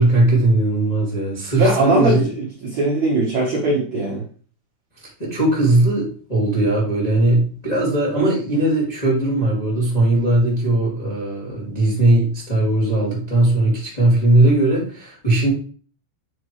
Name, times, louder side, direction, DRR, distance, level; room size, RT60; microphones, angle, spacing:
voice 1, 0.0-2.3 5.2-15.5, right 2 dB, 10° left, -4 dB, 2.3 m, -18 dB
voice 2, 1.6-4.2, right 2 dB, 55° right, -3 dB, 2.0 m, -20 dB
9.2 x 4.8 x 4.9 m, 0.42 s
omnidirectional pair, 5.5 m